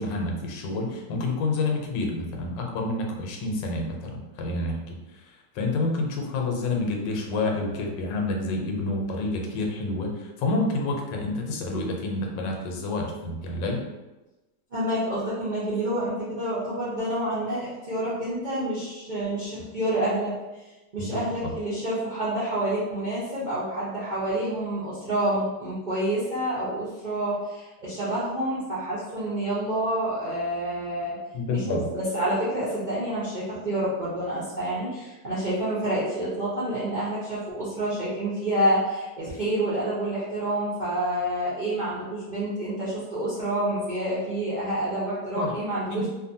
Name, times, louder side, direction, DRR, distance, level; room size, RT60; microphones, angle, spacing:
voice 1, 0.0-13.8 21.0-21.5 31.3-31.9 45.4-45.6 45.9-46.1, left 2 dB, 85° left, 1 dB, 1.2 m, -29 dB
voice 2, 14.7-20.3 20.9-31.1 31.5-46.1, right 1 dB, 75° right, -11 dB, 0.4 m, -28 dB
2.6 x 2.6 x 2.6 m, 1.1 s
omnidirectional pair, 1.9 m